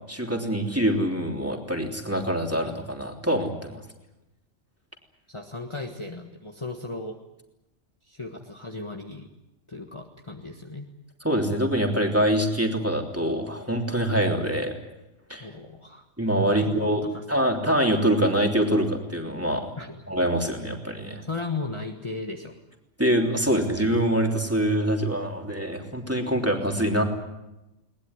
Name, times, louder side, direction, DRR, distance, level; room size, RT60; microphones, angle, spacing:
voice 1, 0.1-3.8 11.2-14.7 15.3-15.5 16.2-17.0 17.3-19.7 20.1-21.2 23.0-27.0, right 1 dB, 10° right, 2 dB, 3.3 m, -24 dB
voice 2, 5.3-7.2 8.0-9.3 9.7-10.9 15.4-16.0 16.5-17.2 19.8-20.0 21.2-22.6, left 3 dB, 25° left, 2 dB, 1.6 m, -36 dB
21.5 x 20.0 x 9.8 m, 0.97 s
omnidirectional pair, 1.3 m